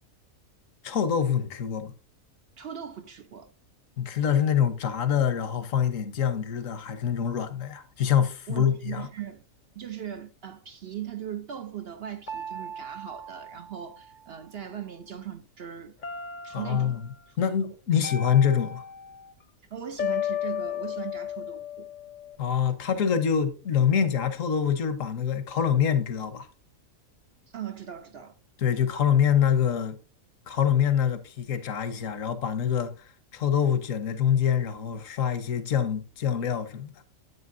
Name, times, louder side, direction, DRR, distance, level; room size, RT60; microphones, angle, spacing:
voice 1, 0.8-1.9 4.0-9.1 16.5-17.1 17.4-18.8 22.4-26.5 28.6-30.0 30.5-36.9, left 8 dB, 70° left, 1.3 m, -25 dB
voice 2, 2.6-3.5 8.5-9.4 9.7-16.0 16.4-17.0 17.3-17.4 19.6-21.9 27.5-28.4, right 10 dB, 60° right, 0.7 m, -39 dB
sound 1, 12.3-14.6 16.0-17.0 18.0-19.3 20.0-22.4, left 7 dB, 40° left, 0.8 m, -35 dB
9.6 x 8.1 x 2.6 m
omnidirectional pair, 1.4 m